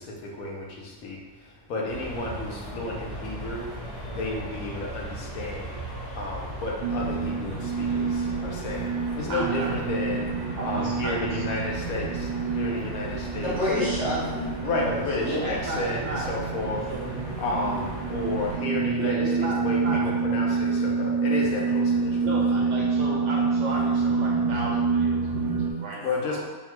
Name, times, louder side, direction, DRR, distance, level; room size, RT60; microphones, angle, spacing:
voice 1, 0.2-0.6 1.0-1.2 1.7-3.6 4.1-5.7 6.2-8.1 8.4-10.3 10.6-12.1 12.5-13.5 14.6-16.8 17.4-22.3 26.0-26.5, left 2 dB, 75° left, -2 dB, 1.1 m, -31 dB
sound 1, 1.9-18.6, right 1 dB, 15° left, 0.8 m, -39 dB
sound 2, 6.8-25.7, right 4 dB, 85° right, 1.1 m, -27 dB
voice 2, 9.3-9.7 10.6-11.5 15.2-16.3 16.9-17.1 19.0-20.4 22.2-26.5, right 2 dB, 65° right, -3 dB, 0.9 m, -34 dB
voice 3, 13.4-15.5, left 1 dB, 55° left, -11 dB, 1.4 m, -29 dB
3.6 x 2.1 x 4.3 m, 1.2 s
omnidirectional pair, 1.5 m